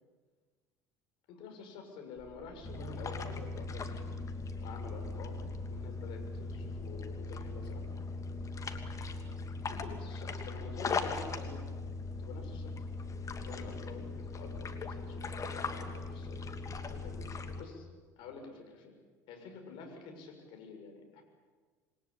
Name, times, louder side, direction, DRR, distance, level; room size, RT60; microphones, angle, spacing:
voice 1, 1.3-4.2 4.6-7.9 9.7-11.7 12.2-12.7 13.4-16.6 16.9-17.3 17.6-17.9 18.2-19.0 19.3-21.2, left 5 dB, 55° left, 4 dB, 6.8 m, -49 dB
sound 1, 2.2-9.2, right 6 dB, 30° right, 6.4 m, -55 dB
sound 2, 2.6-17.6, left 3 dB, 35° left, 2.8 m, -39 dB
28.0 x 22.0 x 8.8 m, 1.5 s
figure-of-eight pair, 65°, 10 cm